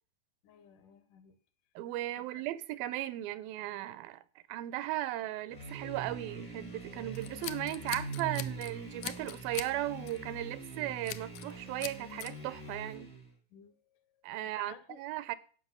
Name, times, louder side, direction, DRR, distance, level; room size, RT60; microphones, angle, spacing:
voice 1, 0.4-1.4 2.2-2.4 13.5-15.0, left 7 dB, 70° left, 2.4 m, -55 dB
voice 2, 1.8-4.2 4.5-13.1 14.2-15.4, right 15 dB, 90° right, 2.5 m, -37 dB
sound 1, 5.5-13.3, right 3 dB, 30° left, 0.4 m, -43 dB
Scissors, 7.2-8.7 9.0-9.7 10.1-10.3 11.1-11.5 11.8-12.3, left 14 dB, 90° left, 1.6 m, -41 dB
9.7 x 5.6 x 7.4 m
omnidirectional pair, 4.0 m